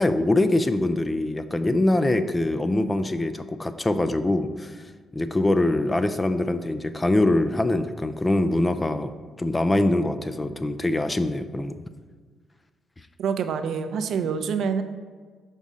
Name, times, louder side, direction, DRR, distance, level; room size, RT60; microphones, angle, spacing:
voice 1, 0.0-4.8 5.1-11.8, left 1 dB, 20° left, 10 dB, 0.3 m, -23 dB
voice 2, 13.2-14.8, right 6 dB, 70° right, 9 dB, 0.4 m, -26 dB
5.5 x 3.6 x 5.0 m, 1.5 s
cardioid pair, 90°, 0 cm